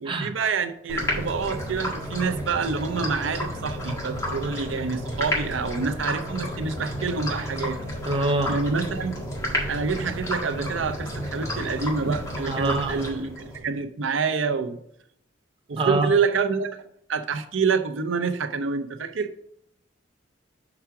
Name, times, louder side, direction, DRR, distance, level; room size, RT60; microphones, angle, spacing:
voice 1, 0.0-7.8 8.5-9.3 9.7-14.8 15.7-19.3, right 5 dB, 85° right, 0.6 m, -27 dB
sound 1, 0.9-13.6, equal, 15° left, 1.7 m, -31 dB
voice 2, 8.1-8.5 12.5-13.0 15.8-16.1, right 2 dB, 25° right, 0.6 m, -24 dB
5.8 x 4.9 x 5.7 m
head